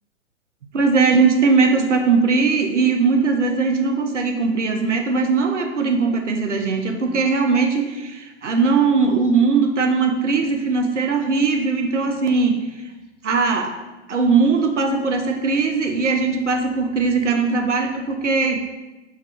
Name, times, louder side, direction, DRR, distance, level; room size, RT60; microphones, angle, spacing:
voice 1, 0.7-12.6 13.2-13.7 14.1-18.6, right 4 dB, 75° right, 4 dB, 0.7 m, -19 dB
4.8 x 2.6 x 3.4 m, 1.1 s
figure-of-eight pair, 120°, 36 cm